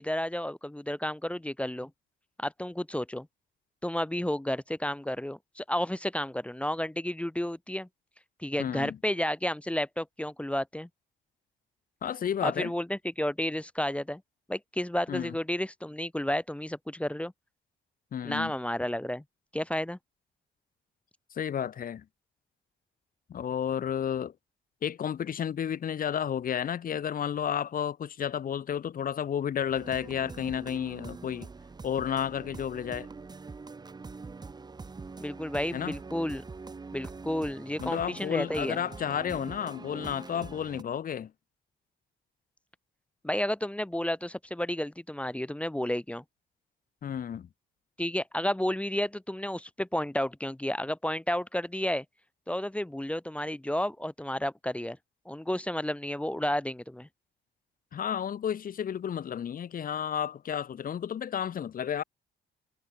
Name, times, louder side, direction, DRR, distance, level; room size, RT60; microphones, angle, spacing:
voice 1, 0.0-1.9 2.4-3.3 3.8-7.9 8.4-10.9 12.4-14.2 14.5-17.3 18.2-19.2 19.5-20.0 35.2-36.4 36.9-38.8 43.2-46.2 48.0-52.0 52.5-55.0 55.3-57.1, left 1 dB, 5° left, 1.0 m, -31 dB
voice 2, 8.6-9.0 12.0-12.7 15.1-15.3 18.1-18.5 21.3-22.0 23.3-24.3 24.8-31.5 31.8-33.1 35.7-36.0 37.8-41.3 47.0-47.5 57.9-62.0, left 9 dB, 45° left, 0.7 m, -32 dB
sound 1, 29.7-40.8, right 4 dB, 20° right, 0.7 m, -44 dB
cardioid pair, 90°, 20 cm